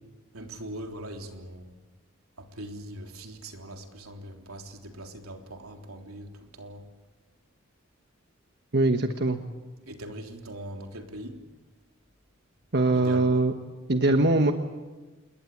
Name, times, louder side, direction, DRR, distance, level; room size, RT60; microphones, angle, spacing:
voice 1, 0.3-1.7 2.4-6.9 9.9-11.4 12.9-13.4, right 1 dB, 85° right, 3 dB, 3.5 m, -41 dB
voice 2, 8.7-9.4 12.7-13.5 13.9-14.5, right 2 dB, 50° right, 6 dB, 1.3 m, -22 dB
28.5 x 21.5 x 8.7 m, 1.2 s
head